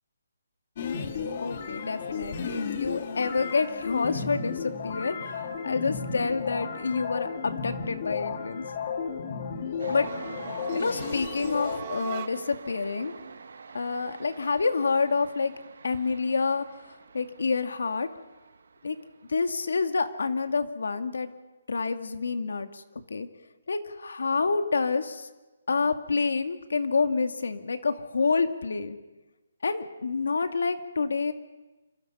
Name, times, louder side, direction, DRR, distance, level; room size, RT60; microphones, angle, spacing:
sound 1, 0.8-11.8, left 6 dB, 30° left, 2.0 m, -33 dB
voice 1, 1.4-8.6 9.9-10.1 10.7-13.1 13.7-15.5 15.8-18.1 18.8-19.0 19.3-21.3 21.7-22.8 23.1-23.3 23.7-25.3 25.7-29.0 29.6-31.3, left 4 dB, 75° left, 8 dB, 2.3 m, -28 dB
sound 2, 9.8-20.1, right 5 dB, 65° right, 2.2 m, -46 dB
sound 3, 9.9-12.7, right 12 dB, 25° right, 0.8 m, -42 dB
27.5 x 26.0 x 5.7 m, 1.1 s
hypercardioid pair, 175°, 0 cm